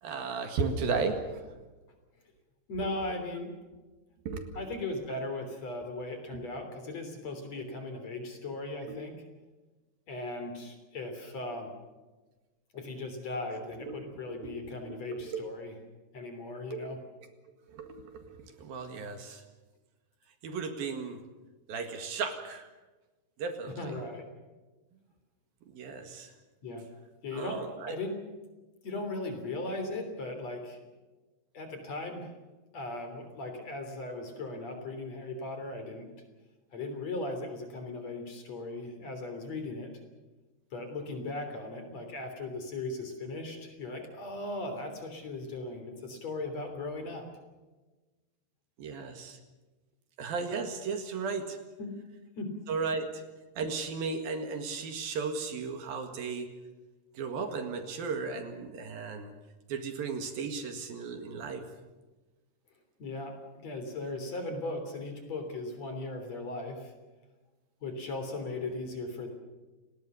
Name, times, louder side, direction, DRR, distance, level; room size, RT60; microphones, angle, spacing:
voice 1, 0.0-1.5 4.3-4.6 6.3-6.4 8.9-9.0 13.5-14.0 14.4-15.4 16.7-16.8 17.7-19.4 20.4-21.2 21.7-22.7 23.4-24.0 25.7-26.3 27.3-28.0 48.8-49.4 50.2-51.6 52.7-53.2 53.6-56.5 57.2-59.3 59.7-61.7, right 4 dB, 65° right, 6 dB, 3.5 m, -35 dB
voice 2, 2.7-3.5 4.6-9.2 10.1-11.7 12.7-15.8 16.1-17.0 23.7-24.3 26.6-26.9 27.2-28.2 28.8-30.8 31.5-32.3 32.7-36.1 36.7-39.9 40.7-47.3 51.8-51.9 52.4-52.5 63.0-63.4 63.6-66.9 67.8-69.3, left 2 dB, 40° left, 6 dB, 4.1 m, -38 dB
30.0 x 19.0 x 6.8 m, 1.2 s
omnidirectional pair, 4.7 m